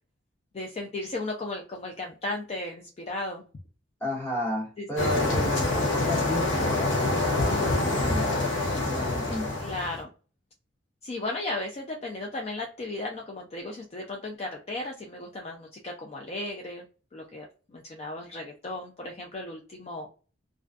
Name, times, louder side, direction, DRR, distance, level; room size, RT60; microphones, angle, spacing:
voice 1, 0.5-3.4 4.8-5.3 9.6-10.1 11.0-16.8 17.1-20.1, left 2 dB, 35° left, 0.3 m, -35 dB
voice 2, 4.0-8.4 8.7-9.5, equal, 10° left, 1.0 m, -33 dB
sound 1, 5.0-10.0, left 2 dB, 75° left, 0.8 m, -26 dB
2.5 x 2.2 x 2.3 m
head